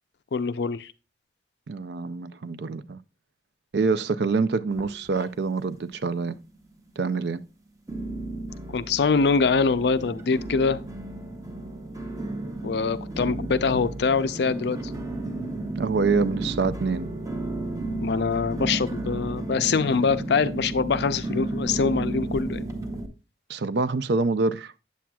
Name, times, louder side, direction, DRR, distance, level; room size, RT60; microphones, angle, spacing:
voice 1, 0.3-0.9 8.7-10.8 12.6-14.8 18.0-22.7, left 5 dB, 65° left, 0.4 m, -24 dB
voice 2, 1.7-3.0 3.7-6.4 7.0-7.4 15.8-17.1 23.5-24.7, right 4 dB, 65° right, 0.4 m, -26 dB
sound 1, 4.7-5.7 5.9-6.6 7.1-7.2 7.9-23.1, right 2 dB, 20° right, 0.6 m, -33 dB
8.3 x 7.3 x 2.3 m
head